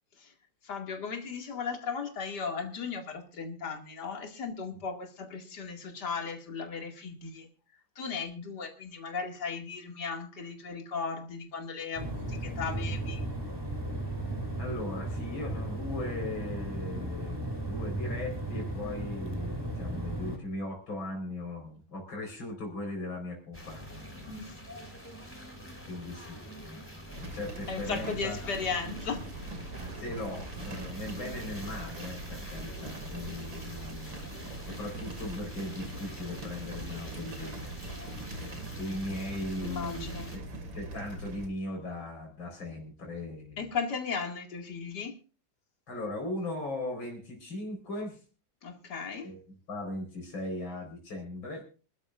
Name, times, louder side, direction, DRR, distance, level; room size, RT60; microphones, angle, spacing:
voice 1, 0.6-7.5 8.0-13.2 24.3-24.5 27.7-29.2 39.6-40.3 43.6-45.1 48.6-49.3, left 5 dB, 60° left, 3 dB, 2.8 m, -36 dB
sound 1, 12.0-20.4, right 1 dB, 10° right, 2.9 m, -35 dB
voice 2, 14.6-24.3 25.9-26.9 27.2-28.5 30.0-34.3 34.6-37.7 38.8-40.4 40.7-43.6 45.9-48.2 49.2-49.4 49.7-51.6, left 2 dB, 85° left, 2 dB, 5.1 m, -38 dB
sound 2, 23.5-40.4, equal, 5° left, 3.8 m, -46 dB
sound 3, 27.1-41.5, right 2 dB, 80° right, 3.2 m, -42 dB
25.5 x 12.5 x 2.5 m, 0.36 s
omnidirectional pair, 2.1 m